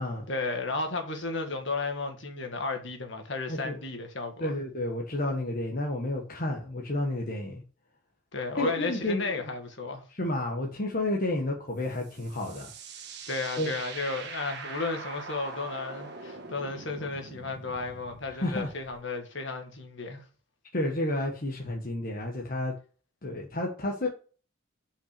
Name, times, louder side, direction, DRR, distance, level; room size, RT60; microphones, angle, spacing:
voice 1, 0.3-4.5 8.3-10.0 13.3-20.3, left 3 dB, 60° left, 1.8 m, -33 dB
voice 2, 4.4-7.6 8.6-9.2 10.1-12.7 13.6-13.7 18.3-18.7 20.7-22.7 23.2-24.1, left 1 dB, 45° left, 1.2 m, -31 dB
sound 1, 11.8-19.0, right 4 dB, 55° right, 1.5 m, -43 dB
5.8 x 5.6 x 6.7 m
head